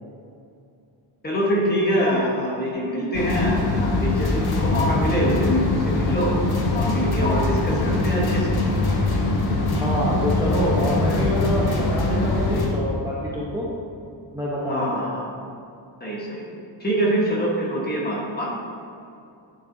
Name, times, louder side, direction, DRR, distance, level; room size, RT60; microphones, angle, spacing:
voice 1, 1.2-6.3 6.7-8.6 14.7-15.2 16.0-16.4 16.8-18.5, equal, 20° left, -4 dB, 1.4 m, -24 dB
sound 1, 3.1-12.7, left 2 dB, 55° left, 1.2 m, -22 dB
voice 2, 9.7-13.7 14.3-15.0, equal, 10° right, -7 dB, 1.0 m, -26 dB
9.5 x 7.4 x 2.8 m, 2.5 s
wide cardioid pair, 170°, 45 cm